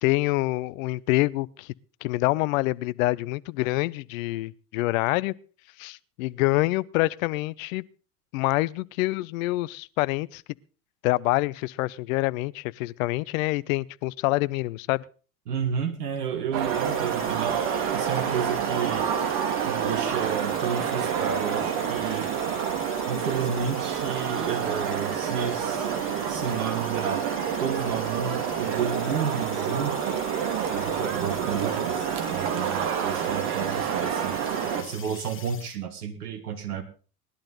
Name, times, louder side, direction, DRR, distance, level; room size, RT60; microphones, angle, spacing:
voice 1, 0.0-1.7 2.0-5.3 5.8-7.8 8.3-10.4 11.0-15.0, left 20 dB, 60° left, 0.7 m, -26 dB
voice 2, 15.5-19.1 19.7-22.3 23.1-25.9 26.3-27.2 27.6-30.2 30.7-34.4 34.8-36.8, right 7 dB, 80° right, 1.7 m, -31 dB
sound 1, 16.5-34.8, right 8 dB, 55° right, 2.3 m, -28 dB
sound 2, 16.6-35.8, left 7 dB, 25° left, 2.3 m, -44 dB
19.0 x 11.5 x 4.0 m
hypercardioid pair, 75°, 46 cm